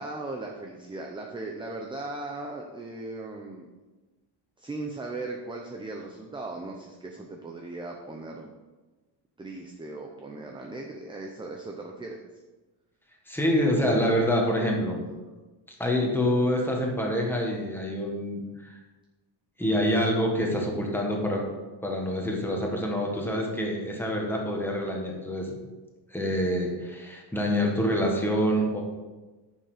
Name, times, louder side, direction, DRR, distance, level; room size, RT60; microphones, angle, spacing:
voice 1, 0.0-3.7 4.6-8.6 9.4-12.3, right 2 dB, 10° right, 1 dB, 0.6 m, -38 dB
voice 2, 13.3-15.0 15.8-18.4 19.6-21.4 21.8-25.6 26.1-28.8, equal, 5° left, -1 dB, 1.6 m, -26 dB
9.7 x 6.9 x 5.0 m, 1.2 s
cardioid pair, 170°, 44 cm